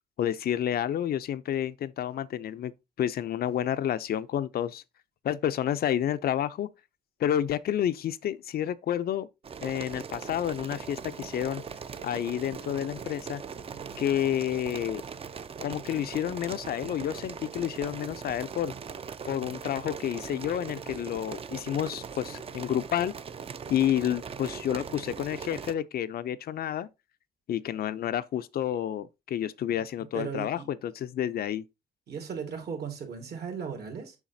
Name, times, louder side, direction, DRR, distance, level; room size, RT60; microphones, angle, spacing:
voice 1, 0.2-2.7 3.0-4.8 5.2-6.7 7.2-9.3 9.6-11.6 12.0-13.4 14.0-15.0 15.6-18.7 19.2-23.1 23.7-26.9 27.5-31.6, left 10 dB, 65° left, 0.4 m, -30 dB
sound 1, 9.4-25.7, right 6 dB, 35° right, 0.4 m, -40 dB
voice 2, 30.1-30.7 32.1-34.2, right 6 dB, 70° right, 2.1 m, -37 dB
7.1 x 5.6 x 2.7 m
cardioid pair, 125°, 17 cm